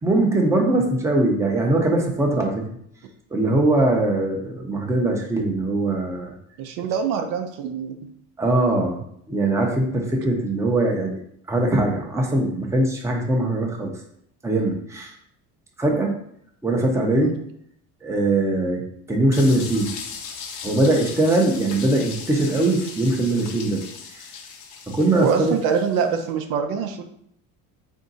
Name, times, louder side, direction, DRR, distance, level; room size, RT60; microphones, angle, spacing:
voice 1, 0.0-2.7 3.3-6.3 8.4-9.0 9.3-11.2 11.5-14.0 14.4-15.1 15.8-16.1 16.6-17.3 18.0-19.9 20.6-23.8 24.2-24.3 24.9-25.6, right 2 dB, 10° right, 1 dB, 0.7 m, -21 dB
voice 2, 6.6-7.9 17.2-17.3 25.2-27.0, right 6 dB, 70° right, 5 dB, 0.6 m, -24 dB
sound 1, 19.3-26.2, left 5 dB, 60° left, 0.8 m, -38 dB
3.6 x 2.7 x 3.9 m, 0.69 s
cardioid pair, 115°, 34 cm